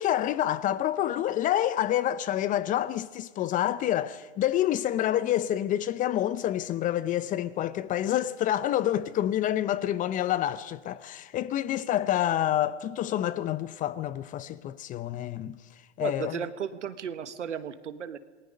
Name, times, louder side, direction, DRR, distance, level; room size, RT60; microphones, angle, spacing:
voice 1, 0.0-15.6 16.0-16.4, left 12 dB, 25° left, 0.6 m, -28 dB
voice 2, 16.0-18.2, right 8 dB, 85° right, 1.4 m, -35 dB
28.0 x 20.0 x 5.3 m
hypercardioid pair, 115°, 35 cm